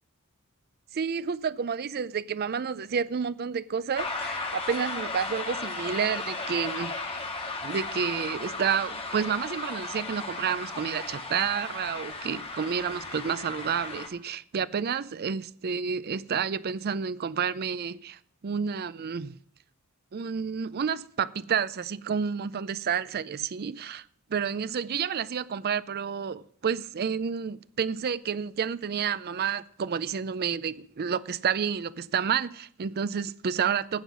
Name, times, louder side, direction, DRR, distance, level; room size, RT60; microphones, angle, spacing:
voice 1, 0.9-7.3 7.6-19.4 20.1-24.0 24.3-34.0, right 7 dB, 45° right, 0.4 m, -30 dB
sound 1, 3.9-14.1, left 3 dB, 25° left, 1.9 m, -35 dB
16.0 x 5.7 x 6.1 m
head